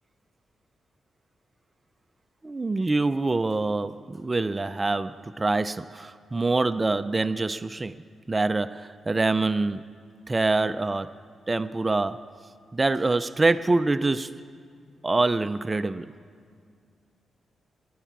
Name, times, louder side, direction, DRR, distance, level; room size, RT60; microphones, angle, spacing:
voice 1, 2.4-8.0 8.3-9.8 10.3-11.1 11.5-12.2 12.7-14.5 15.0-16.1, right 3 dB, 30° right, 13 dB, 0.4 m, -25 dB
20.5 x 10.0 x 6.0 m, 2.2 s
cardioid pair, 60°, 0 cm